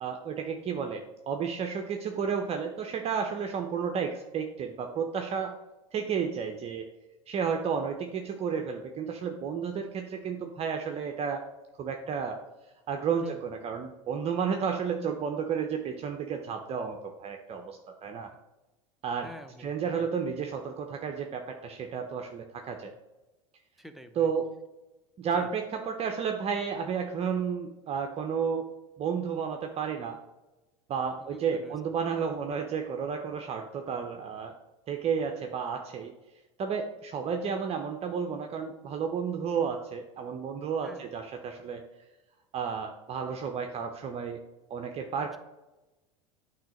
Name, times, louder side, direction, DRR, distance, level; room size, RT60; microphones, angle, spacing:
voice 1, 0.0-5.6 5.9-6.9 7.3-11.5 11.8-12.4 12.9-18.3 19.0-19.3 19.6-22.9 24.2-24.5 25.2-28.7 29.0-30.2 30.9-34.6 34.9-36.1 36.6-41.8 42.5-44.4 44.7-45.4, right 6 dB, 35° right, 4 dB, 0.7 m, -32 dB
voice 2, 19.2-20.1 23.8-24.3 25.3-25.5 31.2-31.8 40.8-41.0, left 1 dB, ahead, 7 dB, 0.7 m, -47 dB
8.7 x 3.2 x 5.2 m, 1.0 s
hypercardioid pair, 85°, 17 cm